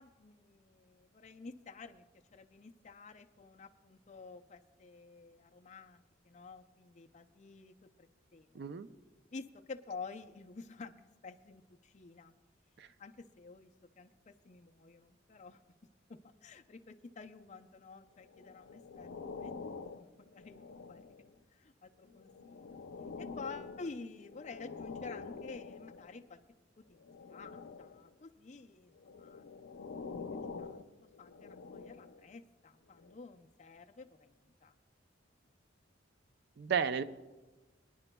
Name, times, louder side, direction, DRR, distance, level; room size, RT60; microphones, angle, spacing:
voice 1, 0.0-2.0 2.3-8.6 9.3-12.3 13.0-13.7 14.0-15.6 16.1-21.0 21.5-22.8 23.2-26.4 26.8-29.5 30.1-30.2 30.6-30.8 31.2-34.7, left 4 dB, 35° left, 6 dB, 0.5 m, -50 dB
voice 2, 8.6-8.9 12.8-12.9 36.6-37.0, right 7 dB, 60° right, 13 dB, 0.4 m, -33 dB
sound 1, 18.3-21.4 22.0-26.2 27.0-28.1 29.0-32.3 33.0-33.1, left 4 dB, 90° left, 0.6 m, -47 dB
24.0 x 9.9 x 2.2 m, 1.2 s
head